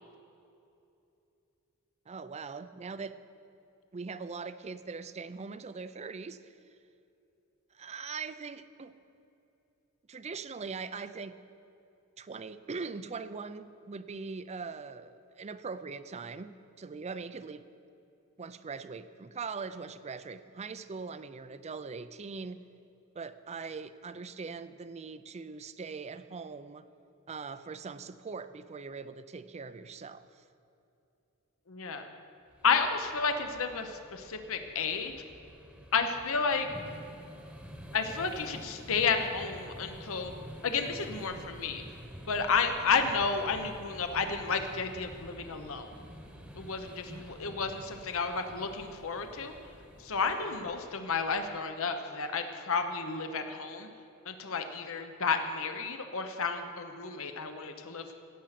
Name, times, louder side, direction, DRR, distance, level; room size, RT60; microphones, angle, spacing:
voice 1, 2.1-3.2 3.9-6.6 7.7-8.9 10.1-11.4 12.2-17.7 18.4-22.6 23.1-26.9 27.3-30.4, right 4 dB, 30° right, 13 dB, 0.4 m, -41 dB
voice 2, 31.7-32.1 32.6-35.1 35.9-36.7 37.9-40.3 40.6-41.8 42.3-45.9 46.6-49.6 50.0-53.9 54.2-58.1, left 5 dB, 65° left, 7 dB, 0.9 m, -31 dB
sound 1, 32.5-51.6, equal, 5° right, 1.2 m, -49 dB
17.0 x 7.9 x 5.9 m, 2.7 s
head